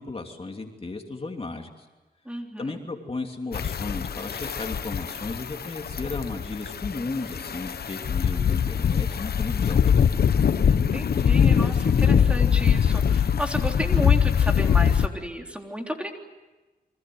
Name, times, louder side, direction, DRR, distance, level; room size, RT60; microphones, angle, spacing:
voice 1, 0.0-1.9 2.3-10.1, left 3 dB, 35° left, 3 dB, 3.0 m, -35 dB
voice 2, 2.3-2.8 10.7-16.2, equal, 5° right, 2 dB, 3.6 m, -32 dB
sound 1, 3.5-15.1, left 7 dB, 75° left, 1.1 m, -22 dB
29.5 x 24.5 x 7.9 m, 1.1 s
wide cardioid pair, 90°, 16 cm